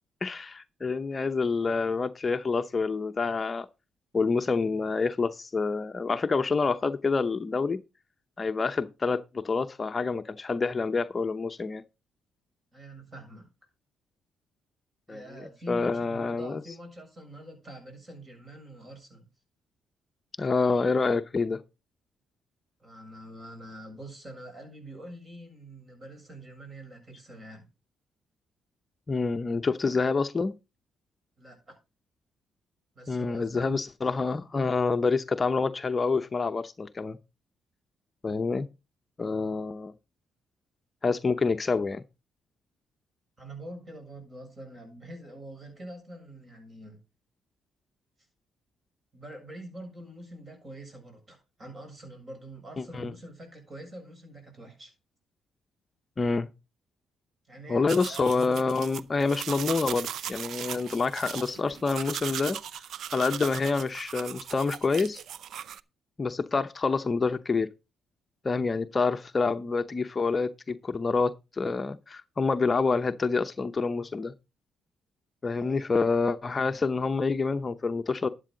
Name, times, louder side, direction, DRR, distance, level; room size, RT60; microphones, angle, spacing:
voice 1, 0.2-3.7 4.1-7.8 8.4-11.8 15.1-15.2 15.7-16.6 20.4-21.6 29.1-30.5 33.1-37.2 38.2-38.7 39.2-39.9 41.0-42.0 52.8-53.1 56.2-56.5 57.7-62.6 63.1-65.2 66.2-67.7 68.4-74.3 75.4-78.3, left 4 dB, 30° left, 0.7 m, -27 dB
voice 2, 12.7-13.5 15.1-19.3 22.8-27.7 31.4-31.8 32.9-33.8 43.4-47.0 49.1-54.9 57.5-58.3 68.5-68.8 75.4-75.8, right 1 dB, 30° right, 7.2 m, -45 dB
sound 1, 57.9-65.8, right 9 dB, 70° right, 0.6 m, -38 dB
12.5 x 8.3 x 3.9 m
cardioid pair, 90°, 0 cm